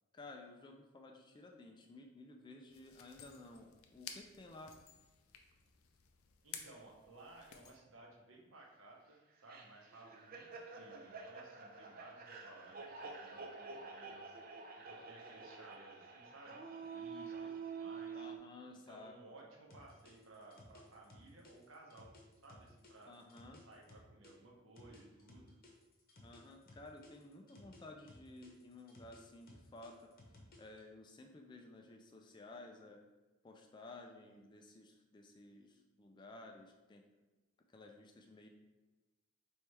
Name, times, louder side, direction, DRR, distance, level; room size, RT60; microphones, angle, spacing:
voice 1, 0.1-4.7 18.1-19.2 23.1-23.6 26.2-30.1 30.6-33.0 33.4-37.0 37.7-38.5, left 2 dB, 20° left, 2 dB, 0.3 m, -54 dB
sound 1, 2.7-7.8, left 7 dB, 85° left, 0.5 m, -54 dB
voice 2, 6.4-14.4 14.9-18.3 18.9-22.1 22.4-23.1 23.7-25.5, right 2 dB, 70° right, -1 dB, 0.9 m, -58 dB
sound 2, 9.5-18.4, right 5 dB, 45° right, 0.5 m, -48 dB
sound 3, 19.7-24.3 24.8-27.8 28.1-30.8, left 2 dB, 45° left, 0.8 m, -59 dB
3.3 x 3.1 x 4.5 m, 1.2 s
head